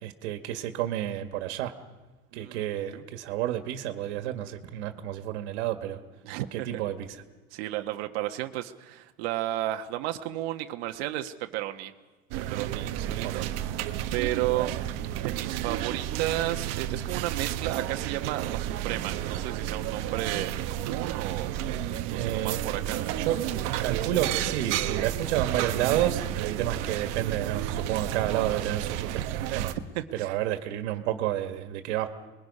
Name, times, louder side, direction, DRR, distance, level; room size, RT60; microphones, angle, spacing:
voice 1, 0.0-1.7 2.3-6.0 6.5-7.2 13.2-13.5 14.5-14.7 22.1-22.6 23.2-23.4 23.8-29.1 29.5-29.7 30.1-32.1, right 12 dB, 80° right, 7 dB, 2.0 m, -30 dB
voice 2, 2.3-3.0 6.2-6.8 7.5-11.9 12.4-13.5 14.1-14.8 15.2-21.5 22.1-23.1 29.9-30.4, right 14 dB, 65° right, 5 dB, 1.3 m, -33 dB
sound 1, 12.3-29.7, right 12 dB, 45° right, 1.1 m, -31 dB
26.5 x 21.0 x 5.5 m, 1.2 s
cardioid pair, 175°, 33 cm